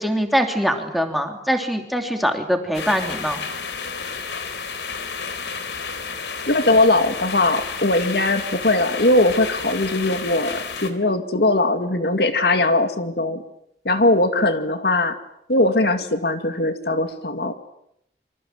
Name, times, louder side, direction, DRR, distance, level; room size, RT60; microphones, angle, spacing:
voice 1, 0.0-3.4, equal, ahead, 4 dB, 2.9 m, -23 dB
sound 1, 2.7-10.9, left 5 dB, 80° left, 3.4 m, -31 dB
voice 2, 6.5-13.4 13.8-15.2 15.5-17.5, left 2 dB, 65° left, 8 dB, 2.2 m, -20 dB
27.5 x 25.0 x 7.8 m, 0.76 s
head